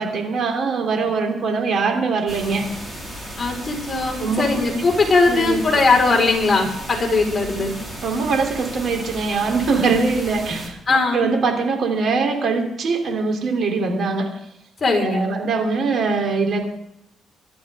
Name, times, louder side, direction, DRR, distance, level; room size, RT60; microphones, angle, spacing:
voice 1, 0.0-2.7 4.2-4.4 5.3-5.6 8.0-14.3 15.0-16.6, right 4 dB, 60° right, 3 dB, 3.8 m, -22 dB
sound 1, 2.3-10.7, equal, 10° right, 5.0 m, -35 dB
voice 2, 3.4-7.7 10.9-11.3 14.8-15.3, left 3 dB, 25° left, -2 dB, 5.2 m, -19 dB
25.0 x 13.0 x 3.9 m, 0.79 s
cardioid pair, 90°, 0 cm